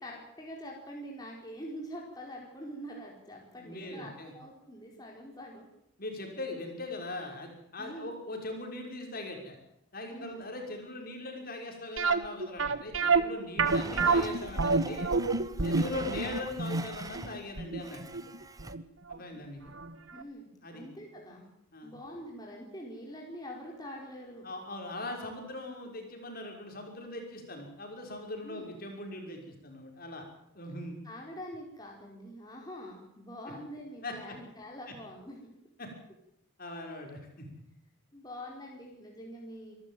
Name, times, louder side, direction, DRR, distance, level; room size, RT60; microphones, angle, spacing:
voice 1, 0.0-5.7 7.8-8.1 10.1-10.5 15.8-16.0 20.1-21.4 21.8-24.5 28.4-28.7 31.0-35.4 38.1-39.7, equal, 20° left, -2 dB, 4.5 m, -45 dB
voice 2, 3.5-4.4 6.0-9.6 9.9-15.1 15.6-18.2 19.1-19.7 20.6-20.8 21.7-21.9 24.4-30.2 30.5-31.0 34.0-34.2 35.8-35.9 36.6-37.5, left 2 dB, 45° left, 3 dB, 5.9 m, -40 dB
sound 1, 12.0-18.8 19.1-19.2 19.8-19.9 20.2-20.3, right 4 dB, 80° right, 1.5 m, -28 dB
Domestic sounds home sounds, 13.6-17.4 17.8-18.7, right 3 dB, 15° right, 1.0 m, -43 dB
26.5 x 13.5 x 9.2 m, 0.79 s
head